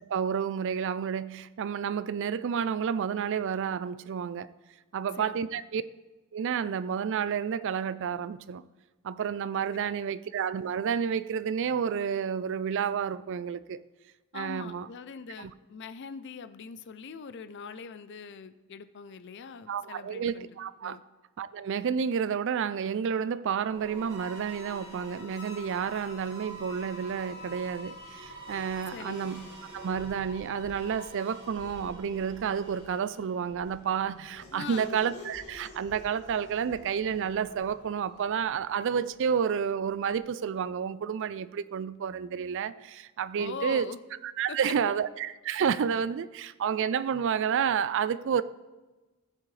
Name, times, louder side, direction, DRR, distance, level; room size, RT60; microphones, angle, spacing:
voice 1, 0.1-4.5 4.9-5.8 6.3-8.6 9.0-13.8 14.3-14.9 15.4-15.5 19.7-21.0 21.4-29.5 29.7-43.9 44.2-48.4, right 7 dB, 55° right, 0.4 m, -30 dB
voice 2, 5.2-5.6 9.7-10.2 14.3-20.5 20.8-21.0 28.9-29.2 34.5-35.0 43.4-44.0 44.5-44.6, left 5 dB, 50° left, 0.5 m, -42 dB
sound 1, 23.6-33.5, equal, 25° right, 3.1 m, -46 dB
Race car auto racing / Accelerating revving vroom, 24.9-40.4, left 1 dB, 85° left, 2.2 m, -52 dB
14.5 x 7.5 x 3.3 m
head